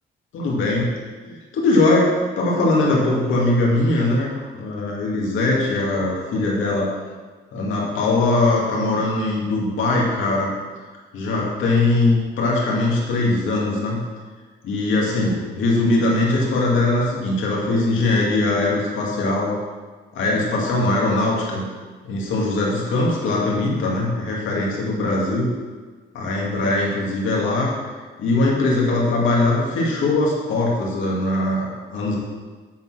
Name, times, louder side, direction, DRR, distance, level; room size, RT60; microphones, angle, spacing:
voice 1, 0.3-0.8 1.2-4.3 4.5-6.9 7.5-10.5 11.1-14.0 14.6-19.5 20.1-21.7 22.0-25.5 26.1-27.7 28.2-32.2, left 2 dB, 80° left, -3 dB, 2.2 m, -21 dB
8.5 x 4.1 x 6.4 m, 1.4 s
cardioid pair, 90°, 20 cm